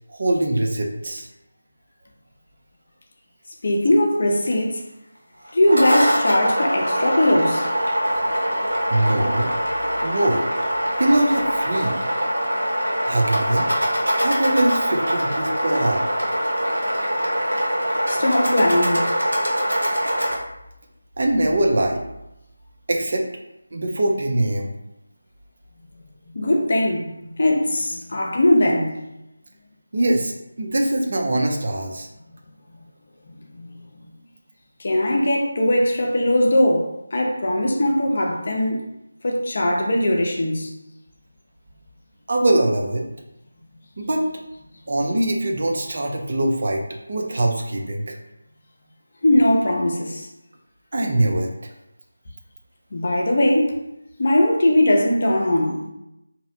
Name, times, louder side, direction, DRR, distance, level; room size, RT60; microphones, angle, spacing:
voice 1, 0.1-1.3 8.9-9.5 10.0-10.5 11.0-12.0 13.1-13.7 14.2-16.1 21.2-22.0 22.9-23.2 23.7-24.7 29.9-32.1 42.3-43.1 44.0-44.2 44.9-46.8 47.1-48.2 50.9-51.5, right 1 dB, 50° right, 0.4 m, -22 dB
voice 2, 3.6-4.8 5.5-7.7 18.1-19.1 26.3-28.9 33.5-33.7 34.8-38.8 39.2-40.7 49.2-50.3 52.9-53.8 54.2-55.8, left 1 dB, 50° left, 0.5 m, -20 dB
sound 1, 5.5-20.3, equal, 85° right, 0.7 m, -23 dB
2.6 x 2.0 x 2.6 m
figure-of-eight pair, 160°, 0 cm